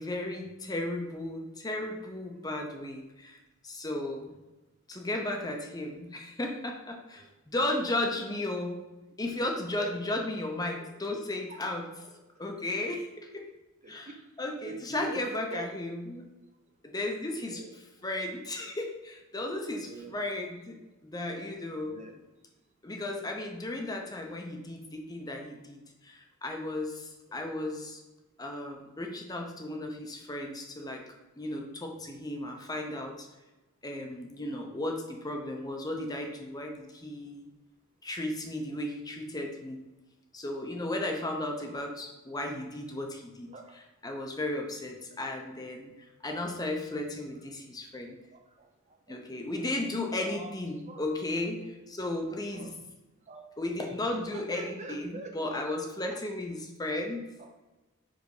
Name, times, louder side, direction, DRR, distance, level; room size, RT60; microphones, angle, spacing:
voice 1, 0.0-3.4 3.6-4.3 4.9-8.9 9.2-11.9 12.4-13.4 13.9-16.2 16.8-17.6 18.0-20.8 21.0-22.0 22.8-28.0 28.4-31.0 31.4-33.3 33.8-37.5 38.0-39.8 40.3-43.5 44.0-45.9 46.2-48.2 49.1-52.7 53.6-57.2, left 1 dB, 15° left, 2 dB, 0.7 m, -35 dB
voice 2, 9.8-10.1 10.7-10.9 11.3-11.9 13.8-14.2 14.6-15.2 15.5-15.6 17.5-17.7 19.9-20.1 21.9-22.2 27.3-27.5 43.5-43.7 46.2-46.4 48.3-48.7 49.1-49.5 50.2-50.5 50.9-51.1 52.5-52.8 53.3-53.5 54.1-55.7 56.1-56.2 57.4-57.5, right 2 dB, 30° right, 3 dB, 0.6 m, -44 dB
5.1 x 3.9 x 4.8 m, 1.1 s
head